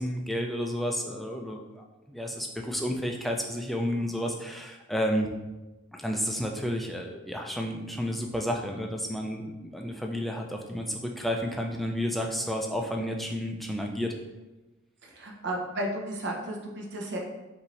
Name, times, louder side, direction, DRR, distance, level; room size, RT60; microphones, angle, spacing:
voice 1, 0.0-5.3 5.9-14.1, equal, ahead, 1 dB, 0.3 m, -31 dB
voice 2, 15.0-17.2, right 1 dB, 60° right, 0 dB, 0.8 m, -33 dB
5.5 x 2.6 x 3.1 m, 1.1 s
head